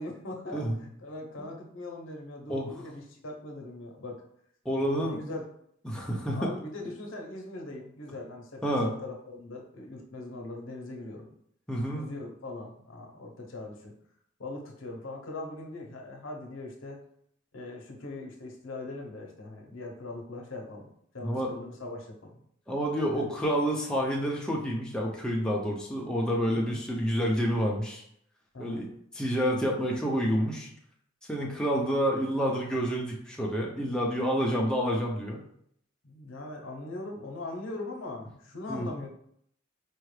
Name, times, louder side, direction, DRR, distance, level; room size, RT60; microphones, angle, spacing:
voice 1, 0.0-4.2 5.0-5.4 6.3-11.3 11.9-13.9 14.4-17.0 17.5-20.9 21.1-22.4 23.1-23.3 26.5-26.8 28.5-28.8 36.0-39.1, left 2 dB, 70° left, 0 dB, 0.8 m, -40 dB
voice 2, 4.6-5.2 5.8-6.5 8.6-8.9 11.7-12.1 21.2-21.5 22.7-28.0 28.6-28.9 29.1-30.7 31.3-35.4 38.7-38.9, equal, 5° left, -3 dB, 0.5 m, -28 dB
4.5 x 2.4 x 3.2 m, 0.69 s
head